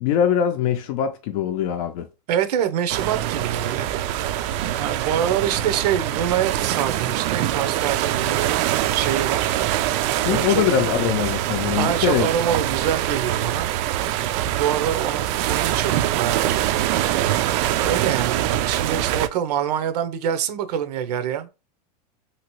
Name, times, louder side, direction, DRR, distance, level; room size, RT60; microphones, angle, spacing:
voice 1, 0.0-2.1 10.3-12.3, left 9 dB, 60° left, 0.5 m, -22 dB
voice 2, 2.3-4.1 4.6-8.6 8.9-9.5 10.2-10.6 11.8-13.7 14.5-16.7 17.7-21.5, right 9 dB, 80° right, 0.7 m, -25 dB
sound 1, 2.9-19.3, right 12 dB, 50° right, 0.4 m, -24 dB
2.9 x 2.9 x 3.0 m
supercardioid pair, 135°, 20 cm